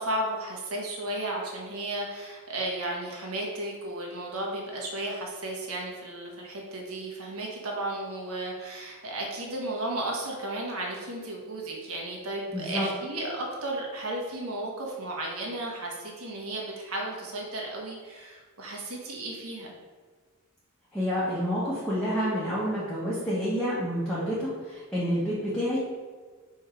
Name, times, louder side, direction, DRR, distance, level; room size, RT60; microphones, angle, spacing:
voice 1, 0.0-19.7, right 1 dB, 85° right, -1 dB, 1.4 m, -34 dB
voice 2, 12.5-12.9 20.9-25.8, equal, 5° left, -9 dB, 1.2 m, -28 dB
5.4 x 3.5 x 5.0 m, 1.5 s
head